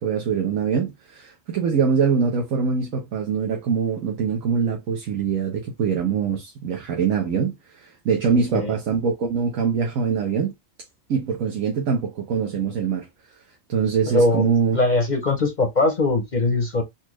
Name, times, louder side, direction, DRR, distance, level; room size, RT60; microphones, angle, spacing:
voice 1, 0.0-10.5 11.1-13.1 13.7-14.8, right 6 dB, 85° right, 1.3 m, -23 dB
voice 2, 8.3-8.7 14.0-16.8, left 2 dB, 45° left, 0.6 m, -21 dB
4.1 x 2.5 x 3.0 m
omnidirectional pair, 1.4 m